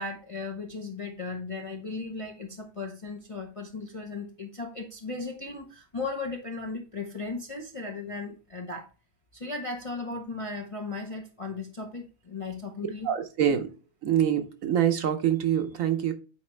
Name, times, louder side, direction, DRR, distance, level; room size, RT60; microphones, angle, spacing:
voice 1, 0.0-8.9 9.3-13.1, left 3 dB, 35° left, 1 dB, 0.6 m, -36 dB
voice 2, 13.0-13.7 14.0-16.1, right 9 dB, 65° right, 7 dB, 1.1 m, -25 dB
8.5 x 4.6 x 3.2 m, 0.34 s
omnidirectional pair, 1.6 m